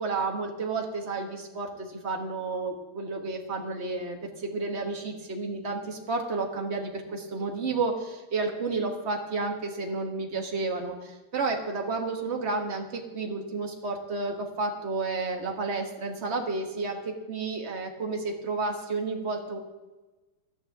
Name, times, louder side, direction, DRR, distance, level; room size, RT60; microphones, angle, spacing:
voice 1, 0.0-19.6, right 3 dB, 35° right, 2 dB, 1.6 m, -31 dB
17.0 x 12.0 x 3.6 m, 1.2 s
omnidirectional pair, 2.4 m